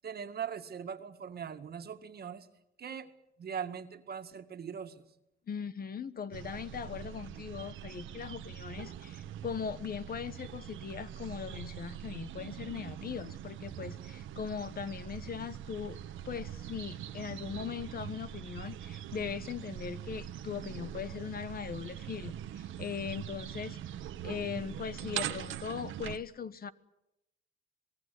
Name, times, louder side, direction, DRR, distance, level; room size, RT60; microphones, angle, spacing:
voice 1, 0.0-2.5 2.8-3.1 3.4-5.1, right 7 dB, 55° right, 8 dB, 2.0 m, -40 dB
voice 2, 5.5-16.0 16.2-23.8 24.2-26.7, left 7 dB, 50° left, 13 dB, 1.2 m, -40 dB
sound 1, 6.3-26.2, right 11 dB, 80° right, 1.3 m, -43 dB
26.5 x 19.0 x 8.5 m, 0.86 s
cardioid pair, 90°, 20 cm